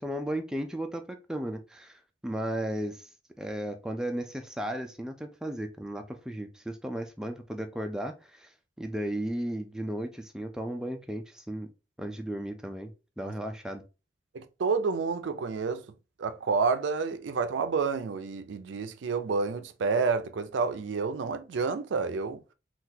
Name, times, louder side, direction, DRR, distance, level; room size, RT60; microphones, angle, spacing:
voice 1, 0.0-3.1 3.4-8.5 8.8-11.7 12.0-13.8, right 1 dB, 5° right, 0.3 m, -35 dB
voice 2, 14.3-15.8 16.2-22.4, right 4 dB, 90° right, 0.4 m, -29 dB
3.8 x 2.4 x 2.7 m
head